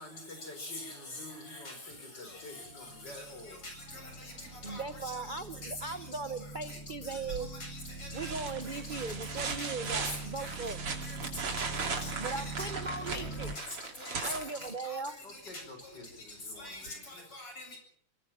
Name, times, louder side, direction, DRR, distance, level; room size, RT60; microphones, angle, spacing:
voice 1, 0.0-3.6 12.6-12.9 14.6-14.7 15.2-17.4, left 2 dB, 50° left, 6 dB, 6.9 m, -50 dB
voice 2, 0.6-1.2 1.5-1.7 2.2-2.7 3.1-5.4 5.8-5.9 6.7-6.8 7.0-7.2 7.5-8.3 8.7-9.0 9.6-9.7 10.4-10.6 11.0-12.7 13.1-13.2 13.6-13.7 14.0-15.0 15.3-15.4 16.6-17.8, left 2 dB, 85° left, 4 dB, 8.9 m, -45 dB
sound 1, 2.7-13.5, right 3 dB, 30° right, 2.3 m, -44 dB
voice 3, 4.6-7.5 8.1-10.8 12.2-13.5 14.2-15.2, right 3 dB, 60° right, 10 dB, 0.5 m, -38 dB
sound 2, 7.3-7.7 8.1-15.1 16.9-17.0, right 5 dB, 85° right, 3.8 m, -38 dB
23.5 x 19.5 x 7.7 m, 0.63 s
omnidirectional pair, 2.4 m